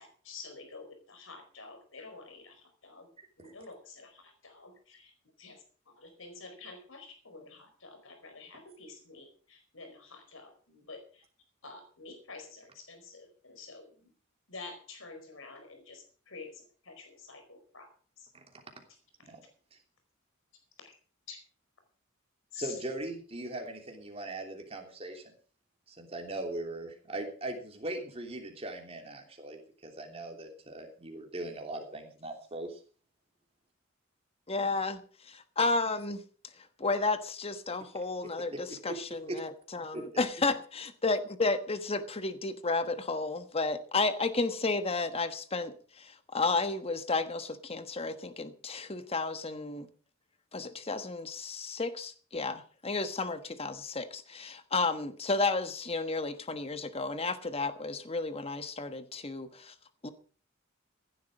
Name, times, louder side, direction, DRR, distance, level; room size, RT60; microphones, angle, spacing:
voice 1, 0.0-3.1 3.4-5.1 5.4-5.6 6.0-11.2 11.6-14.1 14.5-17.9 18.2-18.3 20.8-20.9 21.3-21.4 22.5-22.7, left 4 dB, 75° left, 4.7 m, -49 dB
voice 2, 22.6-25.3 25.9-32.8 38.5-38.6 39.2-39.4 39.9-40.2, right 2 dB, 30° right, 3.2 m, -40 dB
voice 3, 34.5-36.2 36.8-49.9 50.5-59.7 60.0-60.1, left 3 dB, 30° left, 1.2 m, -32 dB
15.5 x 11.0 x 5.0 m
head